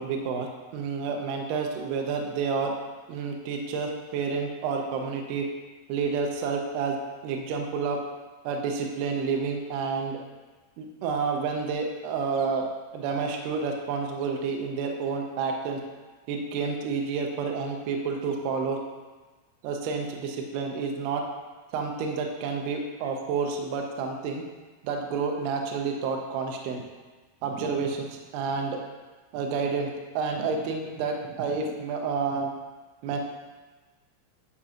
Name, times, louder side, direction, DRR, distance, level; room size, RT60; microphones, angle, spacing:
voice 1, 0.0-2.7 3.1-5.5 5.9-7.0 7.2-8.0 8.4-10.2 10.8-12.7 12.9-15.8 16.3-18.8 19.6-21.2 21.7-24.4 24.8-26.8 27.4-28.8 29.3-29.9 30.2-32.5 33.0-33.2, right 5 dB, 85° right, 2 dB, 2.3 m, -29 dB
11.0 x 4.9 x 2.9 m, 1.3 s
omnidirectional pair, 5.7 m